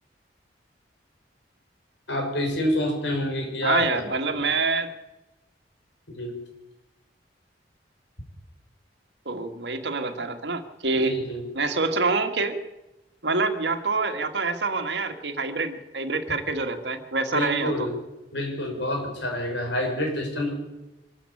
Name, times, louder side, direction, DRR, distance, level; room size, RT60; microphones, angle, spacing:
voice 1, 2.1-3.9 4.3-4.4 6.1-6.3 10.9-11.4 17.3-17.9 18.3-20.5, left 1 dB, 80° left, 3 dB, 6.3 m, -27 dB
voice 2, 3.6-4.9 9.3-11.2 11.5-12.6 13.2-17.7, right 3 dB, 70° right, 6 dB, 1.9 m, -26 dB
24.0 x 13.5 x 8.6 m, 1.0 s
head